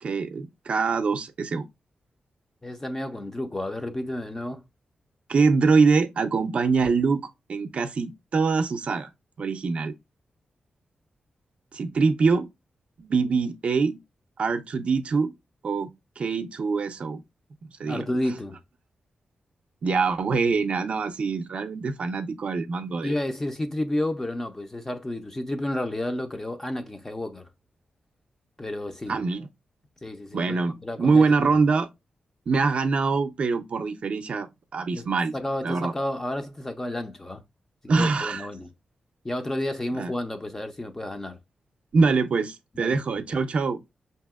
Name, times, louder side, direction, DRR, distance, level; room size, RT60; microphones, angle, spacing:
voice 1, 0.0-1.6 5.3-9.1 9.4-9.9 11.7-12.5 13.0-14.0 14.4-15.3 15.6-17.2 17.8-18.1 19.8-23.1 29.1-29.5 30.3-30.7 31.0-31.9 32.5-35.3 35.6-35.9 37.9-38.5 40.0-40.1 41.9-43.8, right 4 dB, 55° right, 0.4 m, -24 dB
voice 2, 2.6-4.6 17.9-18.6 23.0-27.5 28.6-29.2 30.0-31.5 34.9-35.1 35.3-37.4 37.8-38.7 39.2-41.4 42.8-43.0, left 1 dB, 15° left, 0.4 m, -31 dB
5.3 x 2.8 x 2.3 m
wide cardioid pair, 145°, 3 cm